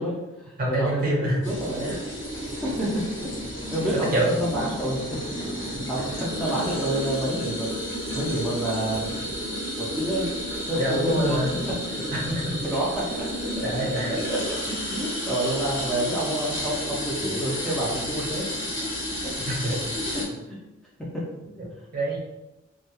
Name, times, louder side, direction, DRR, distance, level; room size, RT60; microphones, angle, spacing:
voice 1, 0.0-2.0 2.5-3.3 3.7-5.2 5.9-9.3 9.8-10.3 10.7-11.4 12.6-13.3 13.6-13.7 14.1-14.4 14.7-18.7 19.2-19.3 19.6-19.8 20.1-20.6 21.0-21.2, right 1 dB, 5° left, -6 dB, 0.4 m, -29 dB
voice 2, 0.6-1.4 1.8-2.0 3.9-4.7 10.8-11.5 12.1-12.6 13.6-14.1 19.5-19.7 21.5-21.7 21.9-22.2, right 1 dB, 45° right, -2 dB, 0.6 m, -26 dB
sound 1, 1.4-20.2, equal, 60° left, 0.8 m, -31 dB
2.2 x 2.2 x 2.9 m, 0.96 s
head